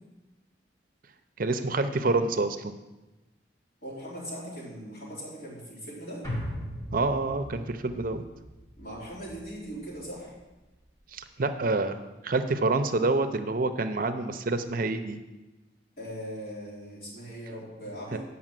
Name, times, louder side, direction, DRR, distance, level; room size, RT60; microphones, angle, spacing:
voice 1, 1.4-2.8 6.9-8.2 11.1-12.0 12.2-15.2 18.1-18.2, right 3 dB, 50° right, 9 dB, 0.6 m, -27 dB
voice 2, 3.8-6.3 8.8-10.3 16.0-18.2, equal, 55° left, -6 dB, 3.9 m, -40 dB
sound 1, 6.2-10.7 11.0-11.1, equal, 20° left, 2.7 m, -39 dB
8.5 x 5.7 x 7.5 m, 1.1 s
head